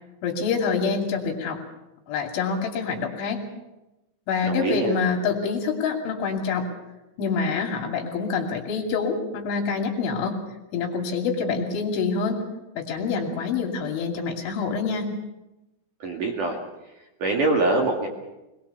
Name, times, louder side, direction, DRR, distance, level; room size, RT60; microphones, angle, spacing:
voice 1, 0.2-1.6 2.1-3.4 4.3-6.7 7.2-10.4 10.7-12.4 12.8-15.1, left 5 dB, 70° left, 2 dB, 5.0 m, -26 dB
voice 2, 4.4-5.0 16.0-16.6 17.2-18.1, right 2 dB, 50° right, 0 dB, 3.1 m, -24 dB
23.0 x 20.5 x 6.9 m, 0.98 s
omnidirectional pair, 5.9 m